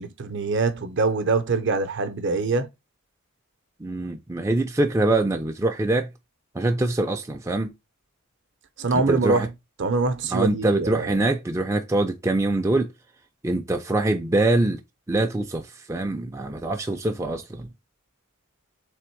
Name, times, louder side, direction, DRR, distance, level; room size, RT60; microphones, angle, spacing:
voice 1, 0.0-2.7 8.8-9.5 9.8-11.2, right 3 dB, 55° right, 0.6 m, -24 dB
voice 2, 3.8-6.1 6.5-7.7 8.9-9.5 10.3-12.9 13.4-14.8 15.1-17.7, right 2 dB, 15° right, 0.4 m, -24 dB
3.5 x 3.4 x 4.4 m
head